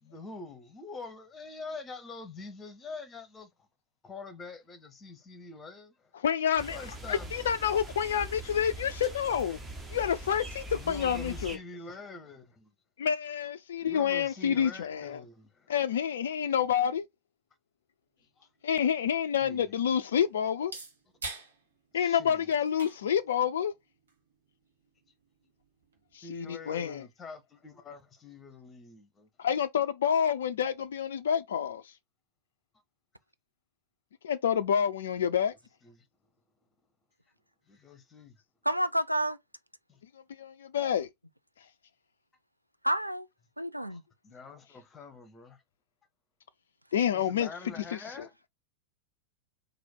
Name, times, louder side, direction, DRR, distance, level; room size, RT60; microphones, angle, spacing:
voice 1, 0.0-3.5 4.0-6.1 6.7-7.5 10.7-12.7 13.8-15.7 18.4-18.5 19.4-20.0 21.9-22.5 26.2-29.3 35.8-36.1 37.7-38.4 39.9-40.0 43.9-44.0 44.2-45.6 47.1-48.3, left 3 dB, 20° left, 1.0 m, -45 dB
voice 2, 6.1-6.8 7.1-9.6 9.9-11.6 13.0-15.2 15.7-17.1 18.6-20.7 21.9-23.7 26.1-27.0 29.4-31.8 34.2-35.5 40.4-41.1 46.9-47.5 47.8-48.0, left 8 dB, 65° left, 0.4 m, -28 dB
sound 1, 6.6-11.6, equal, 15° right, 1.1 m, -42 dB
sound 2, 18.2-26.2, right 3 dB, 70° right, 1.1 m, -49 dB
voice 3, 38.6-39.4 42.8-43.3 43.6-44.0, right 1 dB, 90° right, 0.4 m, -29 dB
4.1 x 2.7 x 4.3 m
figure-of-eight pair, 90°, 0 cm